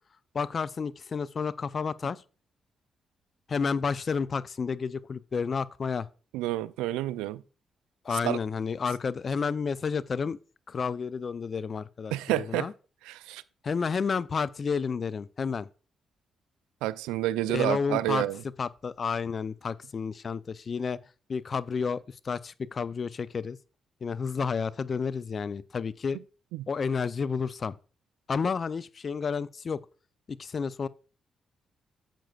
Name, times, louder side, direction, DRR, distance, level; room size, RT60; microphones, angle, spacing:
voice 1, 0.3-2.2 3.5-6.1 8.0-10.4 10.7-12.7 13.6-15.7 17.5-18.3 18.6-21.0 21.3-23.6 24.0-26.2 26.7-27.8 28.3-29.8 30.3-30.9, left 5 dB, 50° left, 0.4 m, -31 dB
voice 2, 6.3-7.4 8.2-8.4 12.1-12.7 13.1-13.4 16.8-18.4 26.5-26.6, right 15 dB, 85° right, 0.3 m, -29 dB
10.5 x 7.4 x 2.4 m
hypercardioid pair, 45°, 0 cm